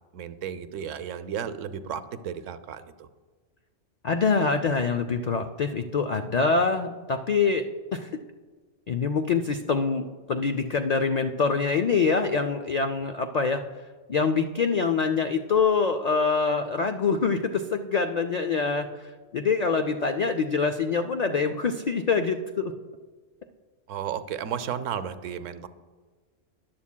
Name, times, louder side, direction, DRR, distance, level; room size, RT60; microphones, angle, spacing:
voice 1, 0.1-3.1 23.9-25.7, right 8 dB, 90° right, 12 dB, 1.0 m, -33 dB
voice 2, 4.0-7.6 7.9-8.1 8.9-13.6 14.1-22.7, left 5 dB, 85° left, 7 dB, 0.3 m, -25 dB
14.5 x 10.5 x 2.2 m, 1.4 s
omnidirectional pair, 1.3 m